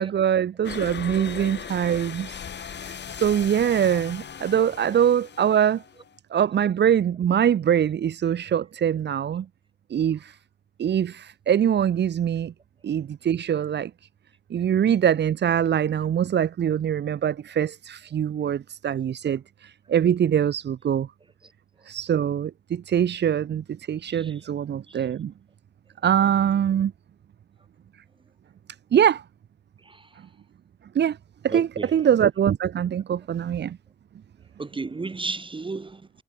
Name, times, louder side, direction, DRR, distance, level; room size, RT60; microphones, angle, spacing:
voice 1, 0.0-2.4 2.6-5.8 6.3-9.5 9.9-10.4 10.8-12.5 12.8-13.9 14.5-21.1 21.8-25.3 26.0-26.9 28.9-29.2 30.9-31.2 31.4-33.8, right 9 dB, 80° right, 0.5 m, -23 dB
sound 1, 0.6-6.2, left 7 dB, 85° left, 1.1 m, -38 dB
voice 2, 29.8-30.2 31.5-32.0 34.6-36.2, right 3 dB, 30° right, 0.8 m, -34 dB
wide cardioid pair, 125°, 18 cm